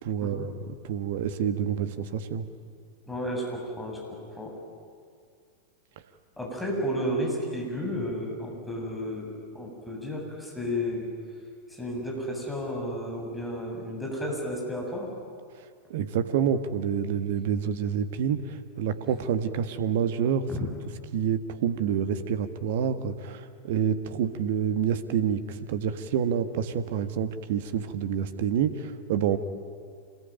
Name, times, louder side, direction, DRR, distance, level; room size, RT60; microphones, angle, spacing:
voice 1, 0.0-2.5 15.9-20.5 21.1-29.4, right 8 dB, 55° right, 11 dB, 1.6 m, -28 dB
voice 2, 3.1-4.5 6.4-11.1 11.7-15.1 20.5-20.7, equal, 5° left, -2 dB, 7.7 m, -32 dB
26.5 x 20.5 x 9.3 m, 2.1 s
figure-of-eight pair, 90°, 0 cm